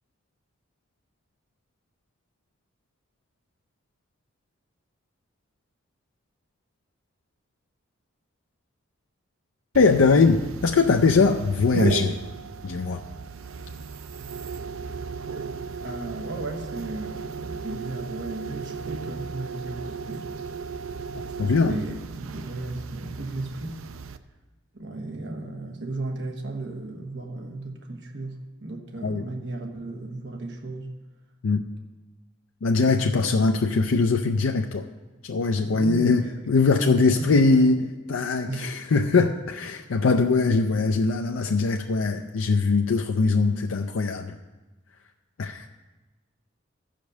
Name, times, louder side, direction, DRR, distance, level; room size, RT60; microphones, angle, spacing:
voice 1, 9.7-12.2 12.6-13.0 21.4-21.8 29.0-29.2 31.4-31.6 32.6-34.8 35.2-44.4 45.4-45.7, left 4 dB, 85° left, 5 dB, 0.5 m, -21 dB
sound 1, 9.7-24.2, right 5 dB, 90° right, 0.5 m, -35 dB
voice 2, 15.8-20.3 21.2-23.9 24.7-31.0 32.8-33.4 35.5-36.4 36.7-37.7 38.4-38.7, right 2 dB, 55° right, 1 dB, 1.1 m, -35 dB
14.5 x 5.1 x 6.4 m, 1.2 s
head